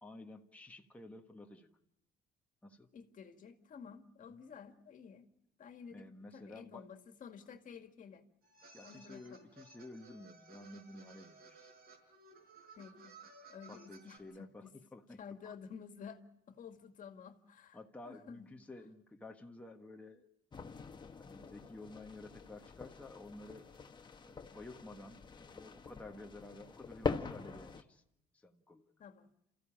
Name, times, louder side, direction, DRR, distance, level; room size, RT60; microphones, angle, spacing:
voice 1, 0.0-1.8 2.6-2.9 4.3-4.4 5.9-6.9 8.7-11.8 13.7-15.5 17.7-20.3 21.2-23.7 24.2-28.0 28.3-28.9, left 2 dB, 10° left, 2 dB, 1.4 m, -52 dB
voice 2, 2.9-5.3 5.6-8.2 8.8-9.5 12.8-13.1 13.5-14.7 15.2-16.2 16.5-17.8 18.0-18.5 29.0-29.3, left 6 dB, 50° left, 7 dB, 2.1 m, -52 dB
sound 1, 8.4-14.2, right 4 dB, 65° right, 5.5 m, -58 dB
sound 2, 20.5-27.8, left 5 dB, 25° left, 1.4 m, -44 dB
28.5 x 15.0 x 8.7 m, 0.85 s
cardioid pair, 110°, 17 cm